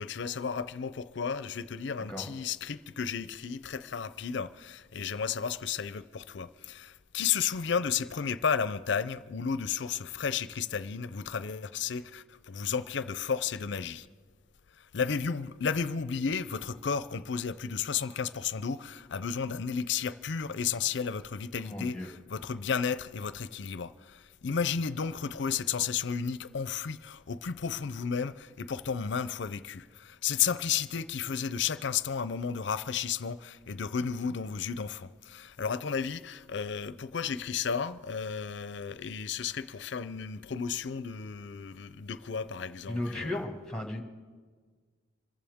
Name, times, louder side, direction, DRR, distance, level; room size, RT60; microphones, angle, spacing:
voice 1, 0.0-14.1 14.7-43.4, left 6 dB, 60° left, 0.5 m, -33 dB
voice 2, 21.6-22.1 42.9-44.0, left 1 dB, 5° left, 1.7 m, -35 dB
26.0 x 14.5 x 3.6 m
head